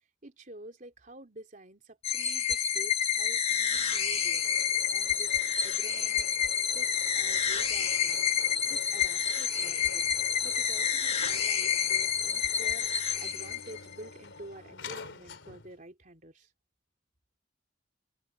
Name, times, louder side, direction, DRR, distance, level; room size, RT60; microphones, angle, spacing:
voice 1, 0.2-4.4 4.9-6.3 6.7-8.3 8.6-10.1 10.4-16.5, right 1 dB, 45° right, 3.7 m, -49 dB
sound 1, 2.0-13.9, left 7 dB, 35° left, 1.6 m, -29 dB
sound 2, 4.1-15.8, left 3 dB, 90° left, 3.3 m, -47 dB
open air
head